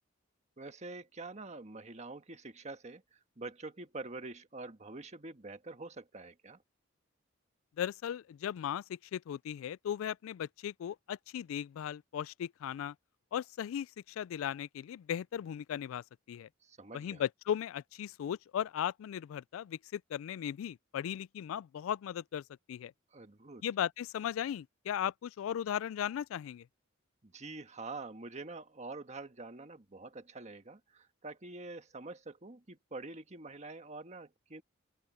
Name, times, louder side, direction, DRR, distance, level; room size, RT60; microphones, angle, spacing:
voice 1, 0.6-6.6 16.6-17.2 23.1-23.6 27.2-34.6, right 3 dB, 35° right, 1.5 m, -46 dB
voice 2, 7.8-12.9 13.3-16.5 16.9-22.4 22.7-22.9 23.6-26.6, left 9 dB, 85° left, 0.3 m, -37 dB
open air
head